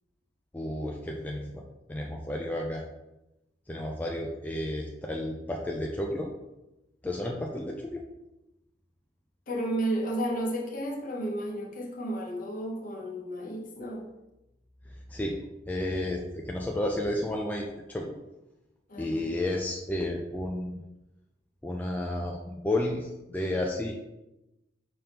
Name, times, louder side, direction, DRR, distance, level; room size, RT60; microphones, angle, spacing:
voice 1, 0.5-1.6 1.9-2.8 3.7-6.3 7.0-8.0 15.1-15.4 15.7-18.2 19.0-20.8 21.6-23.9, left 1 dB, 10° left, -1 dB, 0.3 m, -32 dB
voice 2, 9.5-14.1 18.9-19.3, right 1 dB, 45° left, 1 dB, 0.8 m, -32 dB
5.3 x 3.4 x 2.9 m, 0.96 s
head